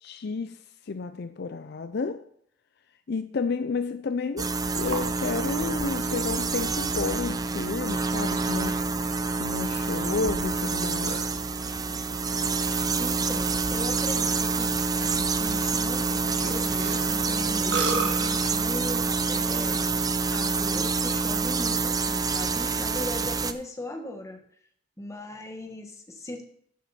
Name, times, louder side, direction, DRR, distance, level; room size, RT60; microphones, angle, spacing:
voice 1, 0.0-0.6 0.9-2.2 3.1-8.8 9.4-11.2, left 4 dB, 60° left, 0.5 m, -31 dB
sound 1, 4.4-23.5, right 4 dB, 20° right, 0.5 m, -27 dB
Burping eructation, 4.6-20.6, right 3 dB, 65° right, 1.7 m, -38 dB
voice 2, 13.0-14.7 15.0-24.4 25.0-26.4, left 1 dB, 15° left, 1.3 m, -39 dB
13.0 x 7.4 x 4.2 m
head